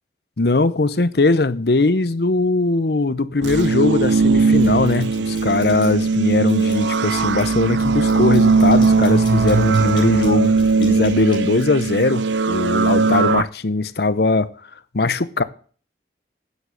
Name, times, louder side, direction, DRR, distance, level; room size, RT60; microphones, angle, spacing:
voice 1, 0.4-10.5 10.8-14.5 14.9-15.4, left 3 dB, 60° left, 0.7 m, -20 dB
sound 1, 3.4-13.4, right 4 dB, 90° right, 0.6 m, -18 dB
sound 2, 3.6-4.1 4.5-6.1 6.5-12.2, left 3 dB, 25° left, 4.4 m, -43 dB
9.8 x 7.6 x 8.0 m
head